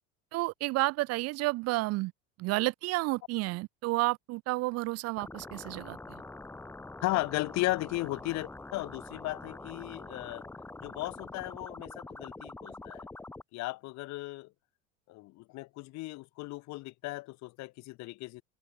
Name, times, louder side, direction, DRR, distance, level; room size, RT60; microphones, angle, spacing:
voice 1, 0.3-2.1 2.4-6.2, right 21 dB, 45° right, 0.5 m, -31 dB
sound 1, 5.2-13.4, left 2 dB, 5° left, 0.6 m, -45 dB
voice 2, 7.0-10.4 10.8-13.1 13.5-14.5 15.1-18.4, left 20 dB, 50° left, 0.9 m, -36 dB
open air
supercardioid pair, 105°, 35 cm